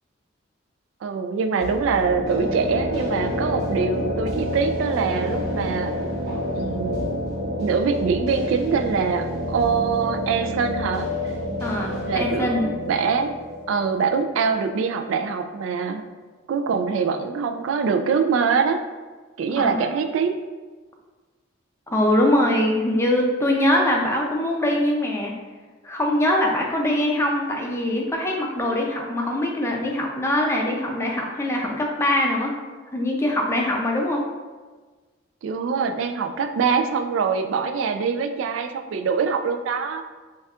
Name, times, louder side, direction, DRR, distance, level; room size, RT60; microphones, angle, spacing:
voice 1, 1.0-5.9 6.5-7.1 7.6-11.1 12.1-13.3 13.7-16.0 16.5-18.8 19.4-20.3 35.4-40.0, right 5 dB, 75° right, 6 dB, 0.3 m, -24 dB
sound 1, 1.6-15.3, left 1 dB, 50° right, 1.2 m, -29 dB
voice 2, 11.6-12.7 19.5-19.8 21.9-25.3 25.8-32.6 32.9-34.2, left 1 dB, 15° left, 0 dB, 0.4 m, -22 dB
6.8 x 2.3 x 2.4 m, 1.3 s
head